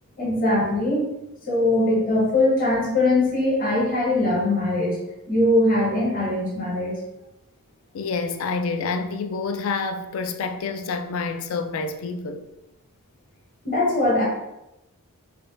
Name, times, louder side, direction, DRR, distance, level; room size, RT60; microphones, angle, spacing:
voice 1, 0.2-1.1 1.5-5.0 5.3-7.0 13.6-14.2, left 1 dB, 40° left, 1.0 m, -21 dB
voice 2, 7.9-12.4, left 4 dB, 60° left, 0.3 m, -28 dB
3.2 x 2.2 x 3.8 m
head